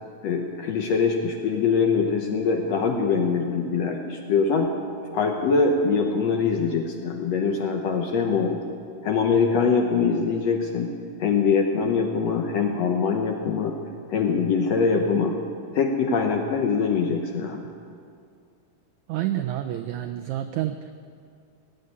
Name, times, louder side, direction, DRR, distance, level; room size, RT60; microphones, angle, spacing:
voice 1, 0.2-4.7 5.1-8.6 9.0-10.9 11.2-13.7 14.1-15.3 15.7-17.6, left 5 dB, 70° left, 3 dB, 1.7 m, -23 dB
voice 2, 19.1-20.9, right 12 dB, 90° right, 8 dB, 1.6 m, -28 dB
18.5 x 7.9 x 9.5 m, 2.3 s
omnidirectional pair, 4.0 m